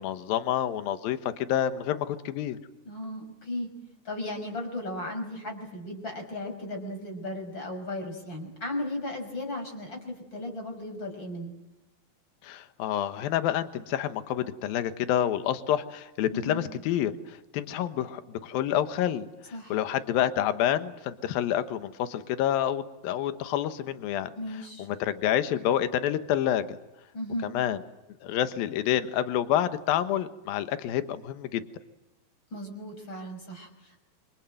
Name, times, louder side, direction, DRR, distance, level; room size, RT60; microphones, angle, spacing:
voice 1, 0.0-2.6 12.4-19.3 19.7-24.3 24.8-26.8 27.4-27.8 28.2-31.6, left 11 dB, 75° left, 10 dB, 3.0 m, -28 dB
voice 2, 2.8-3.7 4.0-11.5 16.3-16.7 19.5-19.8 24.4-24.9 27.1-27.5 32.5-34.0, left 1 dB, 30° left, 4 dB, 6.3 m, -36 dB
27.5 x 26.5 x 7.8 m, 0.99 s
omnidirectional pair, 4.3 m